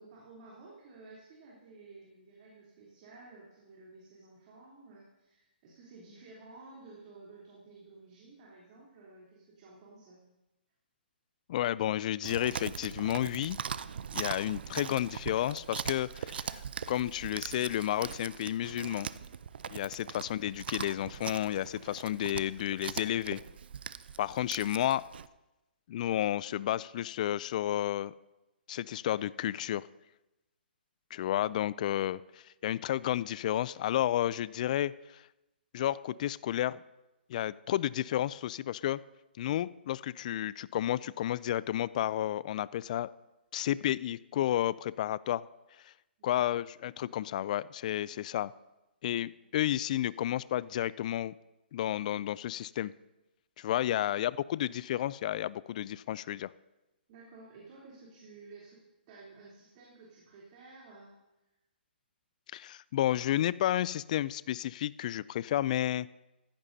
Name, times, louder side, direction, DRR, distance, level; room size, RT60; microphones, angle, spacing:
voice 1, 0.0-10.2 31.1-31.4 46.2-46.4 53.9-54.2 57.1-61.1, right 3 dB, 40° right, -5 dB, 3.4 m, -53 dB
voice 2, 11.5-13.6 14.1-16.6 16.9-19.1 19.7-23.4 24.2-25.0 25.9-28.1 28.7-29.9 31.1-35.2 35.7-36.8 37.3-39.0 39.4-43.1 43.5-45.4 46.2-48.5 49.0-51.3 51.7-52.9 53.6-56.5 62.5-66.1, left 12 dB, 45° left, 20 dB, 0.3 m, -31 dB
Chewing mastication, 12.2-25.3, right 7 dB, 65° right, 0.5 m, -41 dB
15.5 x 14.0 x 2.8 m, 0.98 s
hypercardioid pair, 145°, 6 cm